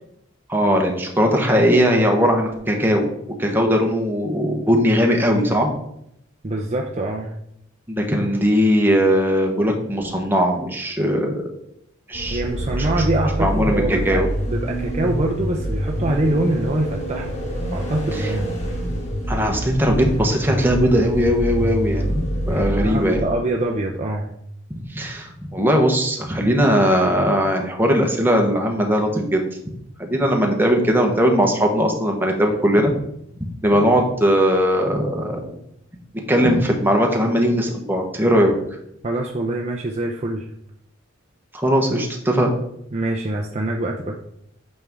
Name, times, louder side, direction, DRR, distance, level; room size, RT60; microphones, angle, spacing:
voice 1, 0.5-3.1 3.4-5.7 7.9-11.3 12.1-12.4 12.8-13.1 13.4-14.3 18.1-18.3 19.3-22.2 22.5-23.2 24.9-29.4 30.0-33.0 33.6-35.6 36.3-38.5 41.5-42.5, equal, 10° right, 1 dB, 1.1 m, -19 dB
voice 2, 6.4-7.3 12.3-17.4 17.7-18.6 22.5-24.3 39.0-40.5 42.9-44.2, right 1 dB, 35° right, 1 dB, 0.6 m, -24 dB
sound 1, 12.1-23.4, equal, 35° left, 1.9 m, -26 dB
8.7 x 5.4 x 3.6 m, 0.75 s
head